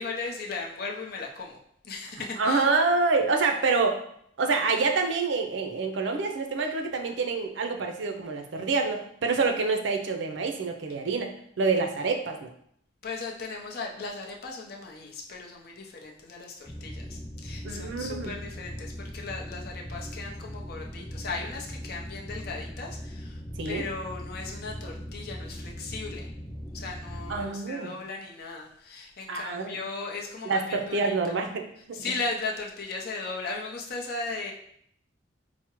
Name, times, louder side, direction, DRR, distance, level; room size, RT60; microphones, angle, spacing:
voice 1, 0.0-1.6 1.8-2.7 13.0-26.3 26.7-31.4 31.9-34.5, left 3 dB, 55° left, -1 dB, 0.6 m, -37 dB
voice 2, 2.4-4.0 4.4-11.3 11.6-12.5 17.6-18.3 23.6-23.8 27.3-28.0 29.3-29.8 30.4-32.1, right 4 dB, 75° right, 4 dB, 0.5 m, -27 dB
sound 1, 16.7-27.5, equal, 10° left, 0.3 m, -39 dB
4.6 x 2.1 x 2.9 m, 0.69 s
head